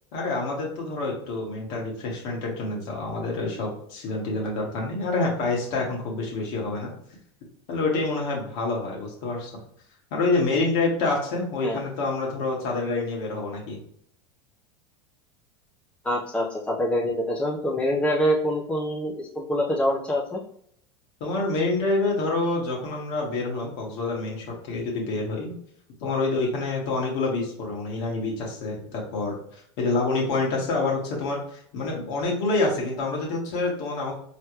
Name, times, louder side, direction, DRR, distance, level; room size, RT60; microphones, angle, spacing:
voice 1, 0.1-6.9 7.7-9.5 10.1-13.8 21.2-25.6 26.0-34.1, left 3 dB, 60° left, -2 dB, 1.8 m, -27 dB
voice 2, 16.0-20.4, equal, 5° left, -4 dB, 1.0 m, -25 dB
4.4 x 3.3 x 3.1 m, 0.64 s
hypercardioid pair, 95°, 15 cm